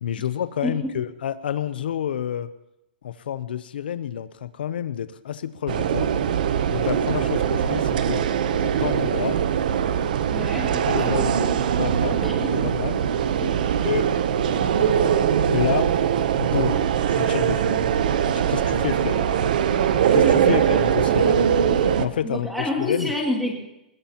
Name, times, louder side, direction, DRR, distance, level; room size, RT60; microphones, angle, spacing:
voice 1, 0.0-2.5 3.0-6.1 6.7-8.2 8.5-9.4 10.8-11.4 11.7-12.2 12.5-13.1 13.4-13.5 13.8-14.1 15.5-15.9 16.4-17.8 18.2-19.3 20.1-21.5 22.0-23.1, left 9 dB, 75° left, 13 dB, 0.7 m, -29 dB
sound 1, 5.7-22.1, right 8 dB, 55° right, 0.9 m, -21 dB
voice 2, 10.3-11.5 12.1-12.7 20.5-20.8 22.2-23.5, left 2 dB, ahead, -1 dB, 2.3 m, -29 dB
sound 2, 13.3-22.1, right 1 dB, 30° right, 7.4 m, -45 dB
21.5 x 20.0 x 3.0 m, 0.88 s
hypercardioid pair, 175°, 5 cm